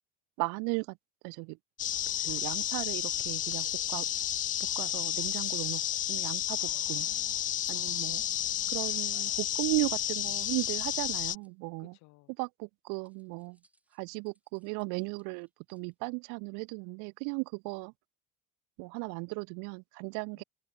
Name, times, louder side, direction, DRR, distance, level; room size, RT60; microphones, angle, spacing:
voice 1, 0.4-1.0 1.2-1.6 2.2-4.1 4.7-5.8 6.1-7.1 7.7-8.2 8.7-11.9 12.4-13.6 14.0-17.9 18.8-20.4, right 31 dB, 75° right, 1.5 m, -36 dB
sound 1, 1.8-11.3, left 12 dB, 25° left, 0.4 m, -32 dB
voice 2, 6.6-8.7 11.8-12.3 20.3-20.4, left 22 dB, 65° left, 3.9 m, -59 dB
sound 2, 9.2-11.5 13.0-15.9, right 1 dB, 5° right, 7.6 m, -71 dB
cardioid pair, 160°, 30 cm